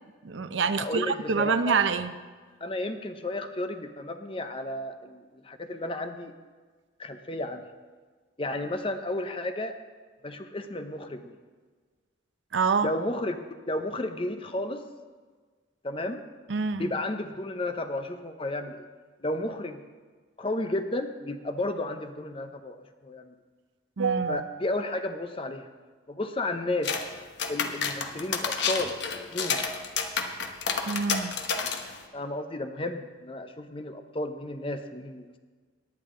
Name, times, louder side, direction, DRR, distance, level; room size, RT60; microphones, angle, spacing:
voice 1, 0.2-2.1 12.5-12.9 16.5-16.9 24.0-24.4 30.9-31.4, right 5 dB, 80° right, 11 dB, 0.6 m, -26 dB
voice 2, 0.8-1.8 2.6-6.3 7.0-7.6 8.4-9.7 10.2-11.4 12.8-13.4 13.7-14.8 15.8-16.2 16.8-18.9 19.2-19.8 20.4-22.8 23.0-23.3 24.3-25.6 26.1-26.9 27.5-28.9 29.3-29.6 32.1-35.4, left 1 dB, 30° left, 8 dB, 0.7 m, -32 dB
sound 1, 26.8-27.1 27.4-32.0, left 5 dB, 65° left, 1.0 m, -30 dB
18.0 x 9.8 x 3.8 m, 1.5 s
head